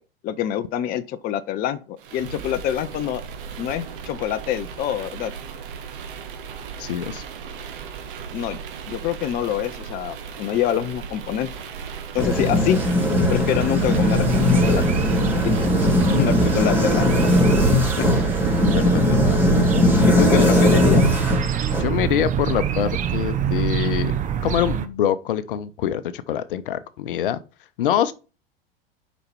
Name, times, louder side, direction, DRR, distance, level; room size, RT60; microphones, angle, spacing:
voice 1, 0.2-3.2 3.6-5.3 8.3-8.6 8.9-11.5 12.1-12.8 13.3-14.9 15.4-15.5 16.1-17.4 18.0-18.1 20.1-21.1, left 10 dB, 30° left, 0.6 m, -25 dB
sound 1, 2.0-18.7, right 6 dB, 60° right, 1.5 m, -36 dB
voice 2, 6.8-7.2 18.7-19.5 20.3-20.8 21.8-24.1 24.4-27.4 27.8-28.1, left 10 dB, 60° left, 0.8 m, -25 dB
sound 2, 12.2-21.8, left 1 dB, 5° right, 2.6 m, -19 dB
sound 3, 13.8-24.8, right 9 dB, 25° right, 0.8 m, -25 dB
6.6 x 5.2 x 4.4 m
figure-of-eight pair, 80°, 30 cm